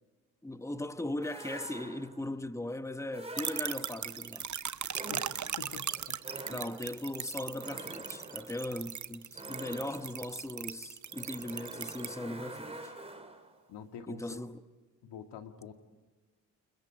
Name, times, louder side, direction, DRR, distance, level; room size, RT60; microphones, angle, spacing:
voice 1, 0.4-4.5 6.5-12.9 14.1-14.6, left 1 dB, 5° left, 1.3 m, -38 dB
sound 1, 1.2-2.3 3.1-4.2 4.9-13.6, right 2 dB, 15° right, 3.2 m, -47 dB
sound 2, 3.4-12.1, right 8 dB, 40° right, 1.0 m, -39 dB
voice 2, 5.6-6.2 6.5-6.8 13.7-14.4 15.0-15.7, left 7 dB, 70° left, 2.2 m, -46 dB
29.5 x 29.0 x 4.9 m
hypercardioid pair, 50°, 44 cm